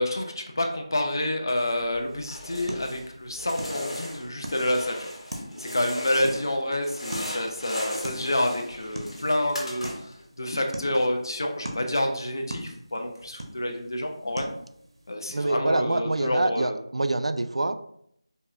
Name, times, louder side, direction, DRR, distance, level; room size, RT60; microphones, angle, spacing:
voice 1, 0.0-5.1 5.6-14.5 15.1-16.7, left 1 dB, 45° left, 3 dB, 0.5 m, -28 dB
sound 1, 1.8-15.2, right 1 dB, 60° right, 0.8 m, -42 dB
sound 2, 2.2-3.1 3.3-6.5 6.8-10.2, left 1 dB, 85° left, 1.3 m, -37 dB
voice 2, 15.3-17.7, right 2 dB, 80° right, 10 dB, 0.4 m, -26 dB
5.3 x 2.3 x 2.5 m, 0.71 s
figure-of-eight pair, 180°, 3 cm